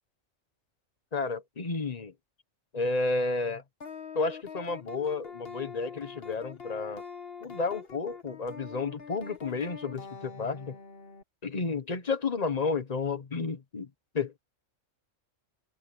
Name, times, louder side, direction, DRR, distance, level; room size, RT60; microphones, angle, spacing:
voice 1, 1.1-2.1 2.7-3.6 4.1-7.0 7.4-10.8 11.4-13.9 14.1-14.3, left 4 dB, 30° left, 1.3 m, -31 dB
sound 1, 3.8-11.2, left 6 dB, 50° left, 1.7 m, -44 dB
omnidirectional pair, 1.3 m